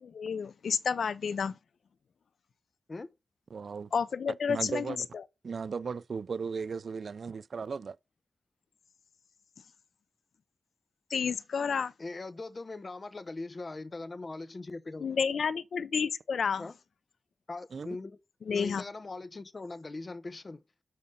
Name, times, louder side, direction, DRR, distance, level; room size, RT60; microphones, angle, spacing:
voice 1, 0.0-1.6 3.9-4.9 11.1-11.9 15.0-16.7 18.5-18.8, left 6 dB, 80° left, 0.5 m, -30 dB
voice 2, 3.5-3.9 4.5-5.1 5.4-8.0 17.7-17.9, right 5 dB, 65° right, 0.4 m, -36 dB
voice 3, 12.0-15.1 16.6-16.7 17.5-18.2 18.5-20.6, left 3 dB, 40° left, 0.9 m, -40 dB
7.5 x 5.3 x 6.6 m
wide cardioid pair, 110°, 0 cm